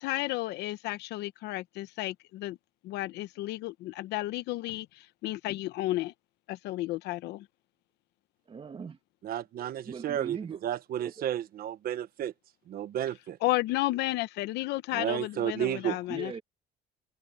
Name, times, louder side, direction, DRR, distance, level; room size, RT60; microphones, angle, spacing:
voice 1, 0.0-2.6 2.8-4.9 5.2-6.1 6.5-7.4 13.4-16.3, left 17 dB, 90° left, 1.0 m, -32 dB
voice 2, 8.5-9.0 9.8-10.6 11.0-11.3 16.1-16.4, right 5 dB, 30° right, 2.1 m, -40 dB
voice 3, 9.2-12.3 12.7-13.4 14.9-16.0, right 11 dB, 60° right, 1.2 m, -32 dB
cardioid pair, 110°, 17 cm